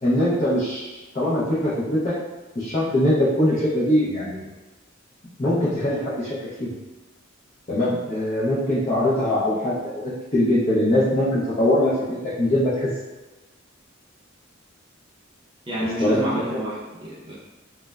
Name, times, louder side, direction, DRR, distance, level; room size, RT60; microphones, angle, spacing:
voice 1, 0.0-2.2 2.6-4.4 5.4-6.7 7.7-12.9 16.0-16.2 16.5-16.6, left 1 dB, 35° left, -10 dB, 0.5 m, -22 dB
voice 2, 15.7-17.3, equal, 25° right, -8 dB, 0.6 m, -28 dB
3.2 x 2.1 x 2.3 m, 1.1 s
head